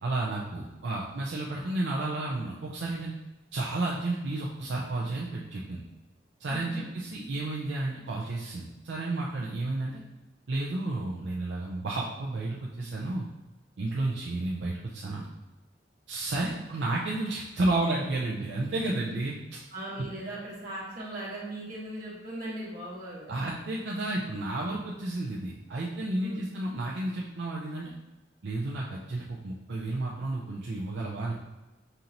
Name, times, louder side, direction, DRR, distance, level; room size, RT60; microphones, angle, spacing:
voice 1, 0.0-3.1 3.5-5.8 6.4-10.0 10.5-13.2 13.8-15.3 16.1-19.6 23.3-27.9 28.4-31.3, right 2 dB, 80° right, -4 dB, 0.5 m, -32 dB
voice 2, 6.5-6.8 19.7-23.3 26.2-26.5, right 1 dB, 55° right, -6 dB, 1.5 m, -38 dB
5.4 x 2.9 x 2.6 m, 1.1 s
head